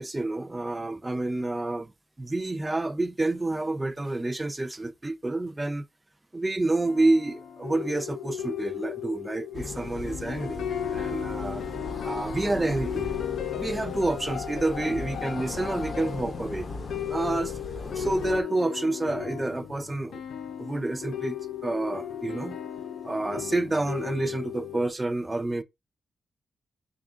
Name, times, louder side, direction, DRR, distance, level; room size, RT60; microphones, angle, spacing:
voice 1, 0.0-1.9 2.2-5.9 6.3-10.6 10.9-11.6 12.0-13.1 13.5-16.7 17.1-17.5 17.9-20.2 20.6-21.4 21.6-22.6 23.0-25.6, right 2 dB, 15° right, 0.4 m, -28 dB
sound 1, 6.8-24.9, left 9 dB, 80° left, 0.4 m, -36 dB
sound 2, 9.5-18.4, left 3 dB, 40° left, 0.7 m, -38 dB
3.6 x 3.6 x 2.5 m
wide cardioid pair, 170°, 0 cm